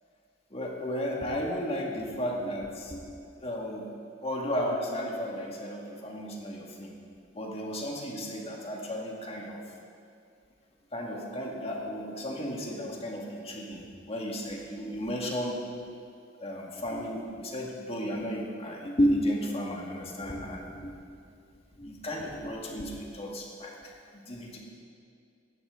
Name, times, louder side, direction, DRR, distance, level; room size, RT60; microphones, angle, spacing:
voice 1, 0.5-3.2 3.4-3.8 4.2-7.0 7.3-9.6 10.9-15.6 16.4-20.9 21.8-24.6, equal, 30° left, -1 dB, 2.0 m, -33 dB
17.0 x 13.0 x 3.8 m, 2.3 s
head